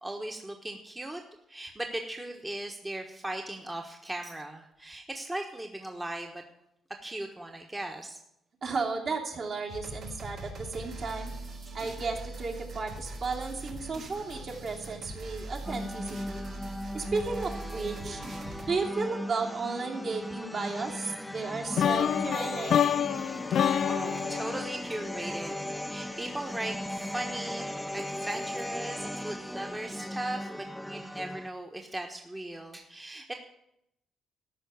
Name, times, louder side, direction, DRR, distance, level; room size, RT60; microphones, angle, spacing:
voice 1, 0.0-1.2 1.5-6.4 7.0-8.2 23.5-33.3, right 1 dB, 15° right, 3 dB, 1.2 m, -38 dB
voice 2, 8.6-11.3 11.7-16.4 16.9-18.2 18.7-22.8, right 4 dB, 55° right, 0 dB, 2.9 m, -34 dB
sound 1, 9.7-18.7, right 2 dB, 70° right, 3.9 m, -41 dB
sound 2, 15.6-31.5, left 1 dB, 5° left, 0.6 m, -37 dB
sound 3, 21.8-25.7, left 9 dB, 65° left, 0.4 m, -28 dB
13.5 x 5.7 x 9.5 m, 0.82 s
cardioid pair, 90°, 0 cm